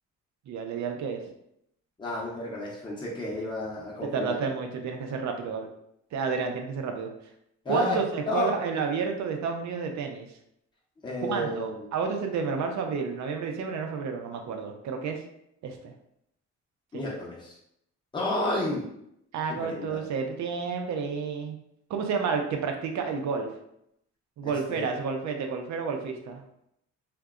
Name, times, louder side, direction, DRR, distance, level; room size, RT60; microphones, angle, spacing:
voice 1, 0.5-1.2 4.0-5.7 6.1-7.1 7.7-10.3 11.2-15.2 15.6-15.9 19.3-21.6 21.9-23.5 24.4-26.4, right 5 dB, 70° right, 4 dB, 0.6 m, -30 dB
voice 2, 2.0-4.4 7.6-8.0 8.3-8.6 11.0-11.9 16.9-17.5 18.1-18.9 19.6-20.0 24.4-24.8, left 1 dB, 15° left, -4 dB, 0.7 m, -31 dB
2.6 x 2.1 x 2.3 m, 0.76 s
cardioid pair, 90°, 30 cm